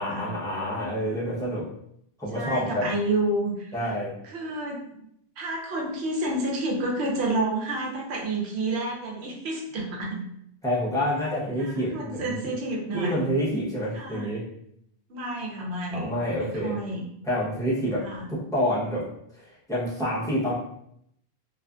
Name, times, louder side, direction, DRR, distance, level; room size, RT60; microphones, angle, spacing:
voice 1, 0.0-1.6 2.2-2.9 3.7-4.1 10.6-12.4 12.9-14.4 15.9-16.8 17.2-18.0 18.3-19.0 19.3-20.5, equal, 5° left, -9 dB, 0.7 m, -28 dB
voice 2, 2.3-3.9 4.2-5.0 5.4-10.2 11.6-13.2 13.9-14.3 15.1-16.1 16.4-17.1 17.9-18.3, right 2 dB, 85° right, -1 dB, 0.9 m, -30 dB
2.4 x 2.4 x 2.3 m, 0.73 s
omnidirectional pair, 1.1 m